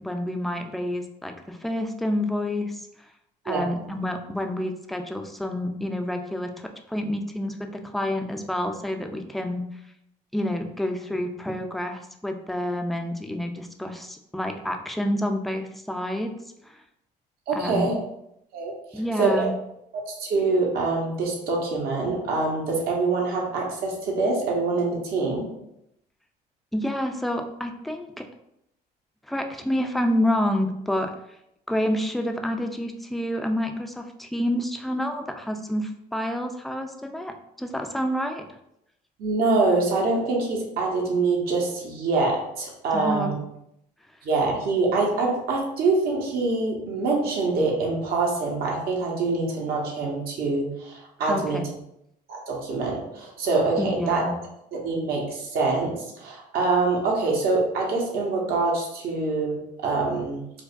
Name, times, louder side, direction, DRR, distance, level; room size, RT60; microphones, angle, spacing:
voice 1, 0.0-3.1 3.4-9.7 10.3-16.3 16.6-16.8 17.5-17.9 18.9-19.5 26.7-28.3 29.3-31.1 31.7-38.4 42.9-43.3 51.3-51.6 53.8-54.4, left 1 dB, ahead, 5 dB, 0.3 m, -28 dB
voice 2, 17.5-18.0 18.5-19.5 20.1-25.5 39.2-43.3 44.2-51.6 52.3-54.3 54.7-60.4, right 3 dB, 65° right, -1 dB, 1.0 m, -25 dB
4.6 x 2.2 x 2.5 m, 0.81 s
cardioid pair, 110°, 17 cm